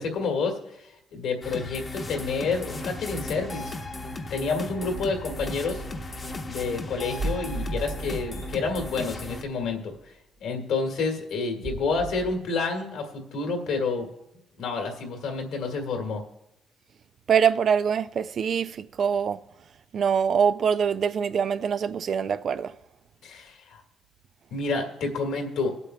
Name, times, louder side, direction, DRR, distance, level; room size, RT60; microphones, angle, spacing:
voice 1, 0.0-3.7 4.3-5.8 6.5-9.9 10.4-14.1 14.6-16.2 23.2-23.8 24.5-25.7, left 4 dB, 80° left, 1.8 m, -29 dB
sound 1, 1.4-9.4, left 2 dB, 35° left, 0.9 m, -36 dB
sound 2, 3.1-3.5 3.8-3.9 4.9-9.9 11.6-12.3, right 2 dB, 75° right, 2.5 m, -37 dB
voice 2, 17.3-19.4 19.9-22.7, right 7 dB, 55° right, 0.4 m, -24 dB
24.5 x 8.2 x 2.3 m
cardioid pair, 90°, 0 cm